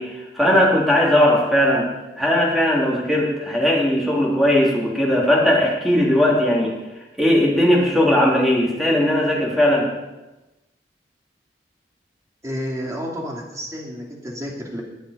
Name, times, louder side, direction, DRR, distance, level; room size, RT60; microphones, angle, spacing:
voice 1, 0.0-1.9 2.2-6.7 7.2-9.9, left 1 dB, ahead, -4 dB, 3.3 m, -18 dB
voice 2, 12.4-14.8, equal, 20° right, -2 dB, 2.8 m, -30 dB
21.0 x 8.5 x 5.2 m, 1.0 s
head